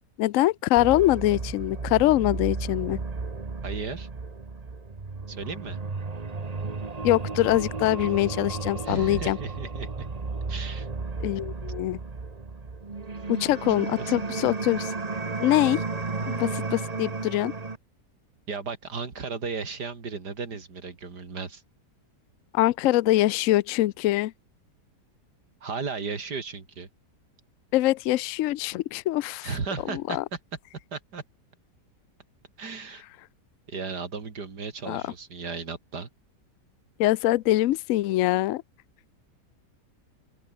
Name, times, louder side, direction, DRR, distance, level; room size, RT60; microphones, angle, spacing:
voice 1, 0.2-3.0 7.0-9.4 11.2-12.0 13.3-14.9 15.4-15.8 16.3-17.5 22.5-24.3 27.7-29.5 29.9-30.2 34.9-35.0 37.0-38.6, left 15 dB, 65° left, 0.8 m, -23 dB
sound 1, 0.8-17.8, right 4 dB, 25° right, 1.3 m, -33 dB
voice 2, 3.6-4.1 5.3-5.8 8.8-10.1 10.5-10.9 14.0-14.1 18.5-21.6 25.6-26.9 29.4-30.4 30.9-31.2 32.6-33.0 33.7-36.1, right 5 dB, 70° right, 3.5 m, -35 dB
open air
omnidirectional pair, 1.8 m